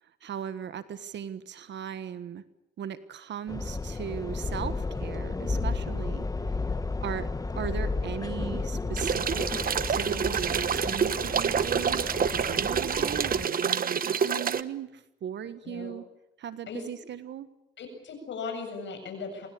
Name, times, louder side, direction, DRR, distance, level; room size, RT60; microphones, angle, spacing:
voice 1, 0.0-2.4 2.8-6.3 7.0-7.3 7.6-16.0 16.4-17.5, right 9 dB, 65° right, 12 dB, 1.5 m, -38 dB
sound 1, 3.5-13.5, left 3 dB, 20° left, 1.3 m, -33 dB
sound 2, 9.0-14.6, right 7 dB, 45° right, 1.2 m, -27 dB
voice 2, 17.8-19.5, left 4 dB, 70° left, 4 dB, 7.7 m, -37 dB
26.0 x 21.5 x 8.6 m, 0.89 s
cardioid pair, 90°, 20 cm